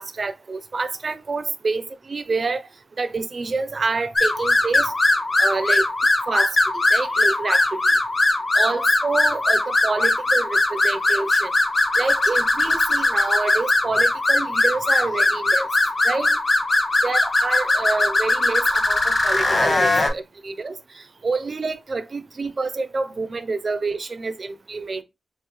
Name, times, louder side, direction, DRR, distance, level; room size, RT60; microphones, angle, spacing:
voice 1, 0.0-2.7 3.0-4.9 5.4-5.9 6.3-7.8 8.5-11.5 12.0-15.7 16.0-16.4 17.0-25.0, right 3 dB, 50° right, 0.6 m, -27 dB
sound 1, 4.2-20.1, left 2 dB, 40° left, 1.4 m, -20 dB
5.6 x 2.2 x 3.2 m
cardioid pair, 80°, 0 cm